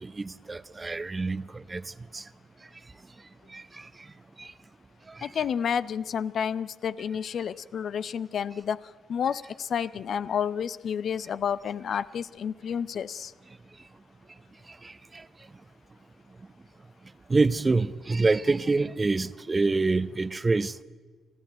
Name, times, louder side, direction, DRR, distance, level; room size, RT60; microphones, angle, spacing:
voice 1, 0.0-2.2 3.5-3.9 4.4-4.5 5.1-5.3 14.8-15.2 17.3-20.7, right 3 dB, 30° right, 0.9 m, -27 dB
voice 2, 5.2-8.8 9.1-13.3, left 7 dB, 60° left, 0.6 m, -30 dB
26.0 x 15.0 x 9.2 m
hypercardioid pair, 40°, 0 cm